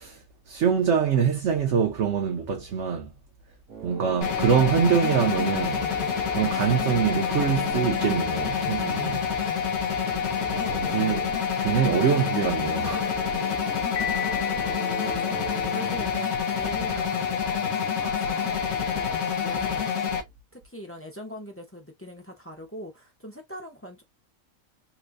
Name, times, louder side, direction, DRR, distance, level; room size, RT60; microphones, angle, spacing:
voice 1, 0.0-3.1 3.8-5.8 6.3-9.3 10.5-11.3 11.6-13.2, right 7 dB, 60° right, 1.2 m, -24 dB
sound 1, 3.7-20.2, right 6 dB, 85° right, 1.3 m, -43 dB
sound 2, 4.2-20.2, left 7 dB, 75° left, 1.4 m, -27 dB
Piano, 14.0-15.9, left 9 dB, 60° left, 1.1 m, -35 dB
voice 2, 15.0-19.9 20.5-24.0, equal, 15° left, 0.7 m, -42 dB
4.3 x 2.2 x 2.6 m
omnidirectional pair, 1.5 m